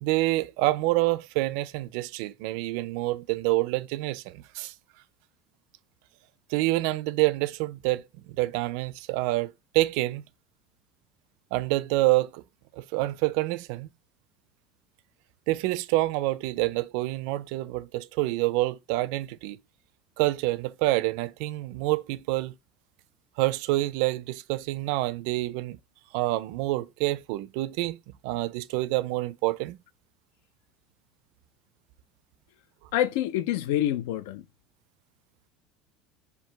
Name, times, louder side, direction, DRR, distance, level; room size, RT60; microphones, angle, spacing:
voice 1, 0.0-4.7 6.5-10.3 11.5-12.4 12.7-13.9 15.5-19.6 20.2-22.5 23.4-25.8 26.1-28.0 28.2-29.8, right 18 dB, 60° right, 0.4 m, -27 dB
voice 2, 32.9-34.4, left 12 dB, 75° left, 0.4 m, -26 dB
4.6 x 2.6 x 3.3 m
cardioid pair, 180°, 0 cm